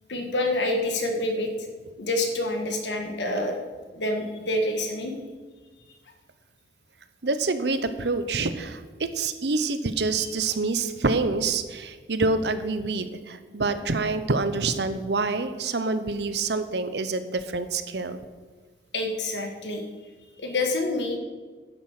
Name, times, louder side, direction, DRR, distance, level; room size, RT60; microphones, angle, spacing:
voice 1, 0.1-1.5 2.0-3.6 3.9-5.1 18.9-19.8 20.4-21.2, left 1 dB, 90° left, 4 dB, 1.7 m, -27 dB
voice 2, 7.2-18.2, right 3 dB, 75° right, 11 dB, 0.8 m, -27 dB
10.0 x 7.3 x 6.6 m, 1.4 s
head